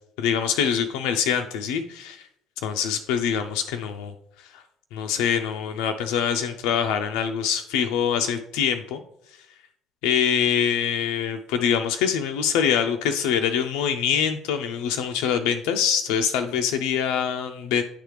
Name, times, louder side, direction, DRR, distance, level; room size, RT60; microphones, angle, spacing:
voice 1, 0.2-2.2 2.6-4.1 4.5-4.6 4.9-9.0 10.0-17.8, left 8 dB, 65° left, 7 dB, 0.3 m, -24 dB
9.9 x 3.4 x 3.2 m, 0.76 s
figure-of-eight pair, 55°, 0 cm